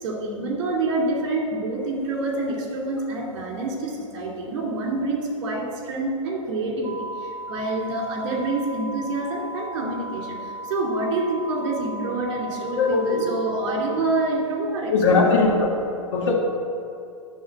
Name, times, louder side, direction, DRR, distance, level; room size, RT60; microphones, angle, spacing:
voice 1, 0.0-15.7, right 2 dB, 45° right, -1 dB, 2.5 m, -27 dB
sound 1, 6.8-14.0, right 1 dB, 15° right, 0.5 m, -36 dB
voice 2, 12.7-13.2 14.9-15.7 16.1-16.3, left 4 dB, 55° left, -1 dB, 1.6 m, -19 dB
11.0 x 3.9 x 7.6 m, 2.6 s
figure-of-eight pair, 105°, 18 cm